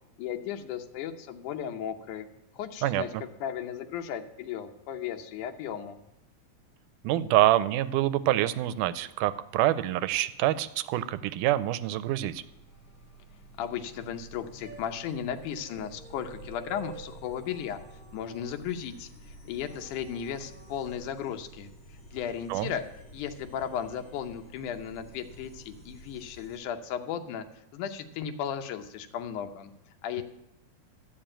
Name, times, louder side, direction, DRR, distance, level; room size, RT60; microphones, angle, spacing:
voice 1, 0.2-2.3 2.5-3.1 3.4-6.0 13.6-17.8 18.1-19.1 19.5-21.7 22.1-22.8 23.1-27.4 27.7-29.7 30.0-30.2, left 8 dB, 80° left, 6 dB, 2.3 m, -35 dB
voice 2, 2.8-3.2 7.0-12.4 22.5-22.7, right 14 dB, 85° right, 13 dB, 2.1 m, -26 dB
sound 1, 12.2-26.6, equal, 35° left, 2.6 m, -50 dB
sound 2, 14.6-18.9 19.6-20.9, right 7 dB, 15° right, 2.0 m, -51 dB
13.0 x 5.1 x 8.8 m, 0.90 s
omnidirectional pair, 3.6 m